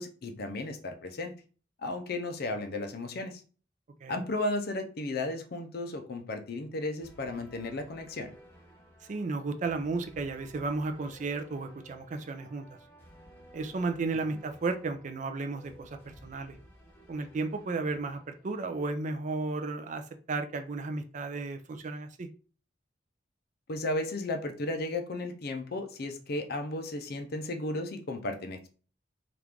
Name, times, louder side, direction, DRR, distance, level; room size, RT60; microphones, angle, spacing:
voice 1, 0.0-1.3 1.8-3.4 4.1-8.3 23.7-28.7, left 2 dB, 60° left, 0.6 m, -34 dB
sound 1, 7.0-18.9, equal, 15° left, 0.9 m, -55 dB
voice 2, 9.1-12.7 13.5-16.6 17.1-22.3, right 3 dB, 45° right, 0.4 m, -34 dB
3.0 x 2.5 x 3.5 m
head